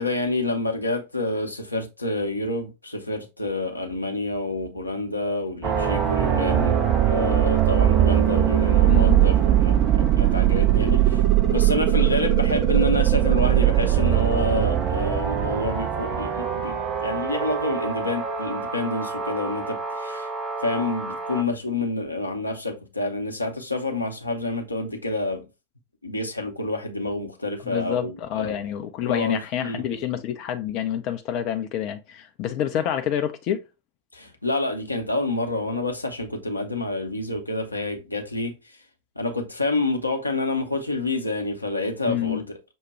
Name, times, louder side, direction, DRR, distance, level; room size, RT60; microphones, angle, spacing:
voice 1, 0.0-20.3 20.6-25.4 26.0-28.5 29.0-29.8 34.1-38.5 39.2-42.6, left 2 dB, 85° left, 0.7 m, -28 dB
sound 1, 5.6-21.4, right 11 dB, 30° right, 0.7 m, -21 dB
voice 2, 8.9-9.2 27.7-33.6 42.1-42.4, left 10 dB, 40° left, 0.4 m, -27 dB
6.1 x 2.2 x 3.0 m
figure-of-eight pair, 90°, 0 cm